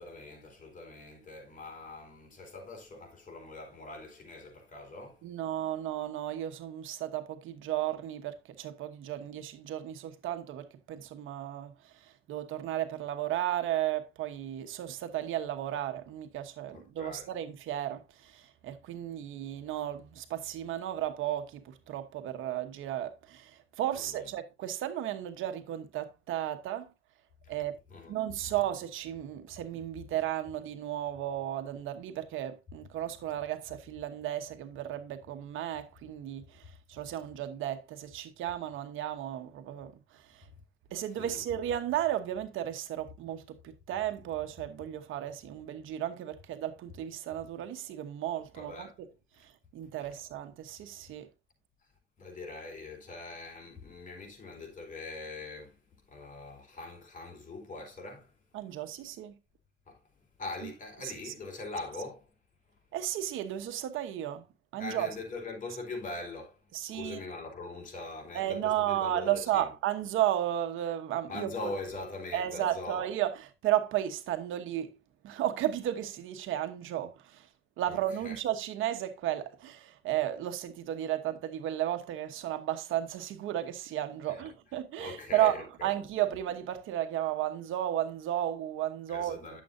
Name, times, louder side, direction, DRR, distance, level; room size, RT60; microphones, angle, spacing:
voice 1, 0.0-5.2 16.7-17.3 23.9-24.2 27.4-27.5 27.9-28.2 41.2-41.4 48.5-49.0 50.0-50.1 52.2-55.7 56.1-58.3 59.9-60.0 60.4-62.3 64.8-69.7 71.3-73.1 77.9-78.4 84.3-84.5 85.0-85.9 89.1-89.6, left 3 dB, 40° left, 4.1 m, -42 dB
voice 2, 5.2-26.9 27.5-27.8 28.1-36.6 36.9-40.4 40.9-49.1 49.4-51.3 58.5-59.4 60.6-60.7 61.0-61.3 62.9-64.5 64.7-65.1 66.7-67.2 68.3-71.7 72.3-74.9 75.2-77.5 77.8-89.6, right 12 dB, 85° right, 1.1 m, -34 dB
10.0 x 7.6 x 2.6 m
cardioid pair, 90°, 20 cm